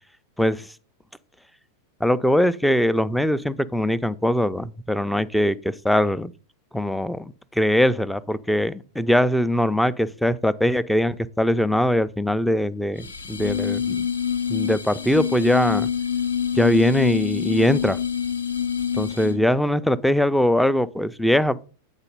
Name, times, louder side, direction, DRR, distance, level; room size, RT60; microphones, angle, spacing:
voice 1, 2.0-6.3 6.7-7.2 7.5-14.1 14.5-15.9 16.5-18.0 19.0-21.6, left 1 dB, ahead, 0.3 m, -21 dB
sound 1, 13.0-19.5, left 8 dB, 70° left, 0.5 m, -26 dB
8.8 x 4.0 x 5.3 m
figure-of-eight pair, 90°, 0 cm